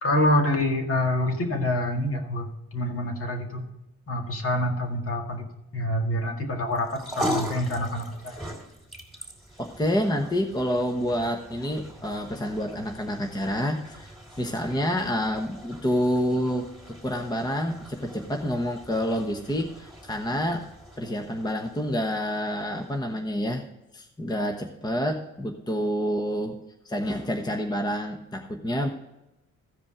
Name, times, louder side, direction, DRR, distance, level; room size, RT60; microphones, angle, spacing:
voice 1, 0.0-3.7 4.1-8.4, left 1 dB, 50° left, 3 dB, 2.0 m, -26 dB
sound 1, 6.7-23.2, equal, ahead, 3.0 m, -40 dB
voice 2, 9.6-14.1 14.4-20.6 21.0-23.6 23.9-26.6 26.8-28.9, equal, 15° left, 3 dB, 1.1 m, -28 dB
15.0 x 5.1 x 4.9 m, 0.92 s
cardioid pair, 90°, 30 cm